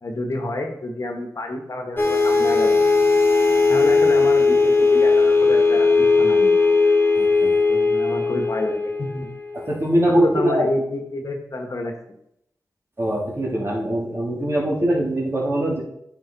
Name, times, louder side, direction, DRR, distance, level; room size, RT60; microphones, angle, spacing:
voice 1, 0.0-2.7 3.7-6.5 7.7-9.3 10.0-11.9, left 2 dB, 55° left, 3 dB, 1.5 m, -29 dB
sound 1, 2.0-9.7, left 4 dB, 30° left, 1.5 m, -18 dB
voice 2, 7.2-7.5 9.5-10.6 13.0-15.8, right 1 dB, 40° right, -3 dB, 3.2 m, -22 dB
8.8 x 5.4 x 4.1 m, 0.75 s
cardioid pair, 50°, 7 cm